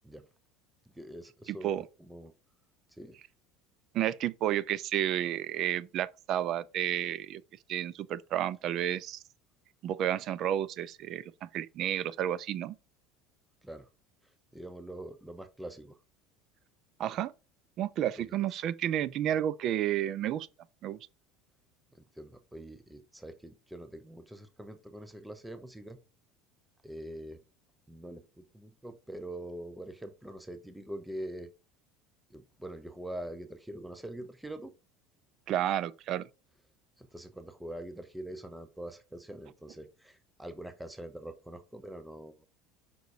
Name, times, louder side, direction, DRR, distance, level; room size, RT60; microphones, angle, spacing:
voice 1, 0.9-2.3 2.9-3.2 13.6-13.9 14.5-16.0 18.2-18.4 21.9-26.0 26.8-27.4 27.9-31.5 32.3-34.7 37.0-42.5, right 1 dB, 5° right, 0.7 m, -44 dB
voice 2, 3.9-7.4 7.7-9.2 9.8-12.7 17.0-17.3 17.8-20.5 20.8-21.0 35.5-36.3, right 11 dB, 45° right, 0.5 m, -31 dB
5.4 x 3.9 x 4.7 m
supercardioid pair, 135°, 0 cm